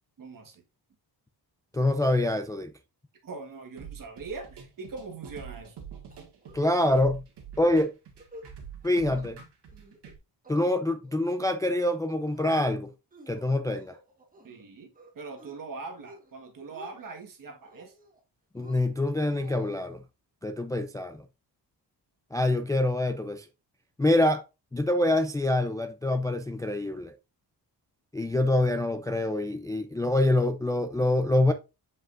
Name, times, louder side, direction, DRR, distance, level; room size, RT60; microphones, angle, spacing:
voice 1, 0.2-0.6 3.2-5.8 14.4-17.9, right 4 dB, 50° right, 1.6 m, -42 dB
voice 2, 1.7-2.7 6.5-7.2 7.6-7.9 8.8-9.4 10.5-12.9 13.3-14.0 18.5-20.0 20.4-21.2 22.3-23.5 24.0-24.4 24.7-27.2 28.1-31.5, left 1 dB, 10° left, 0.3 m, -25 dB
sound 1, 3.8-10.2, right 7 dB, 85° right, 2.0 m, -45 dB
sound 2, 6.1-6.7 6.9-7.0 7.4-7.6 8.0-8.5 8.8-9.3 9.7-10.1 10.4-11.1 11.5-12.0 12.3-12.7 13.1-14.6 14.9-15.6 15.9-16.3 16.6-17.2 17.6-18.2 18.6-19.9, equal, 20° right, 1.4 m, -52 dB
7.5 x 5.2 x 2.5 m
wide cardioid pair, 150°, 40 cm